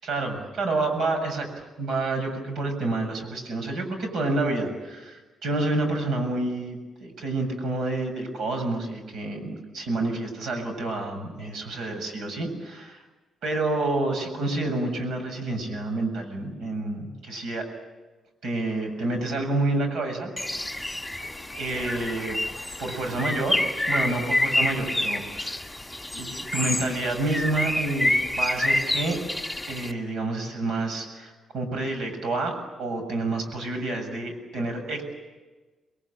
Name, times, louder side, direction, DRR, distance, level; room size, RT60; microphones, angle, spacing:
voice 1, 0.0-13.0 13.4-17.7 18.4-20.3 21.6-22.4 22.8-25.6 26.1-29.2 29.7-35.0, right 2 dB, 70° right, 5 dB, 7.1 m, -29 dB
Bird, 20.4-29.9, left 1 dB, 5° left, 1.8 m, -28 dB
28.5 x 22.0 x 8.8 m, 1.3 s
cardioid pair, 165°, 0 cm